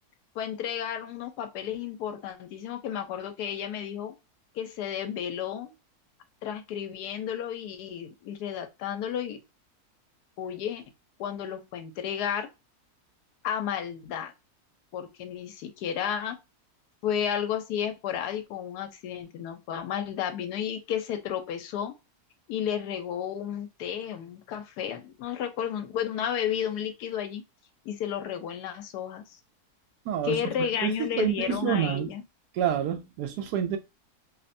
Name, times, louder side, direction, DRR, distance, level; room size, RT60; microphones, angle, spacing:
voice 1, 0.3-4.1 4.5-5.7 6.4-9.4 10.4-10.8 11.2-12.5 13.4-14.3 14.9-16.4 17.0-21.9 22.5-27.4 27.8-29.4 30.2-32.2, left 9 dB, 90° left, 1.2 m, -32 dB
voice 2, 30.1-30.4 30.8-30.9 31.2-32.1 32.6-33.8, right 9 dB, 85° right, 1.1 m, -27 dB
3.1 x 2.1 x 2.6 m
omnidirectional pair, 1.7 m